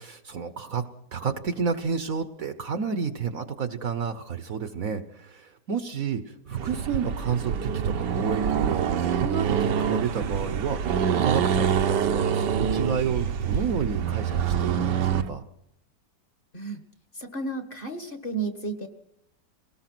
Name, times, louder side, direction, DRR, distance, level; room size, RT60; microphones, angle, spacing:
voice 1, 0.0-15.4, right 6 dB, 55° right, 10 dB, 1.3 m, -30 dB
Accelerating revving vroom, 6.6-15.3, right 7 dB, 75° right, 1.6 m, -26 dB
voice 2, 17.1-18.9, right 3 dB, 30° left, 7 dB, 1.7 m, -32 dB
23.0 x 19.0 x 6.1 m, 0.75 s
omnidirectional pair, 1.9 m